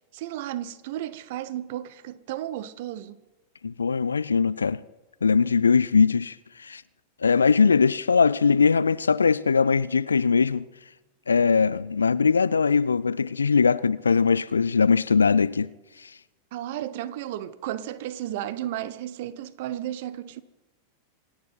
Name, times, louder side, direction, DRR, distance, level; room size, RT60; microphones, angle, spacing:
voice 1, 0.1-3.2 16.5-20.4, right 12 dB, 50° right, 0.8 m, -33 dB
voice 2, 3.6-4.8 5.2-6.8 7.2-10.6 11.3-15.7 16.0-16.1, left 5 dB, 75° left, 0.4 m, -21 dB
26.5 x 9.4 x 5.7 m
figure-of-eight pair, 90°, 0 cm